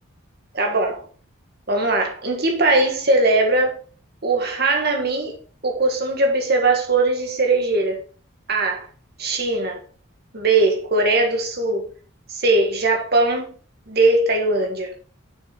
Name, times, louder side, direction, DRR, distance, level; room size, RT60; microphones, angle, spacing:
voice 1, 0.5-1.0 1.7-3.8 4.2-5.3 5.6-8.0 8.5-8.9 9.2-9.8 10.3-11.9 12.3-13.5 13.9-14.9, right 2 dB, 45° right, 1.6 m, -20 dB
7.2 x 6.4 x 4.0 m
head